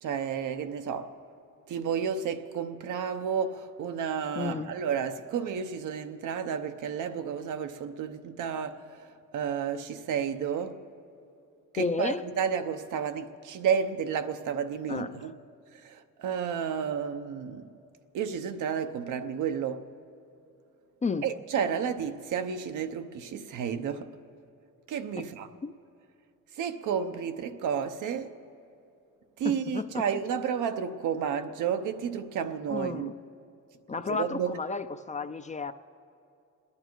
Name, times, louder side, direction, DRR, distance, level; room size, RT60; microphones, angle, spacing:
voice 1, 0.0-1.2 1.7-10.8 11.7-15.3 15.7-17.7 18.1-19.9 21.2-24.2 24.9-25.5 26.5-28.4 29.4-33.1 34.1-34.6, right 7 dB, 80° right, 0.9 m, -31 dB
voice 2, 4.4-4.7 11.8-12.2 14.9-15.2 21.0-21.3 25.6-25.7 29.4-30.0 32.7-33.1 33.9-35.7, left 4 dB, 25° left, 0.5 m, -32 dB
29.5 x 9.9 x 4.6 m
cardioid pair, 90°, 30 cm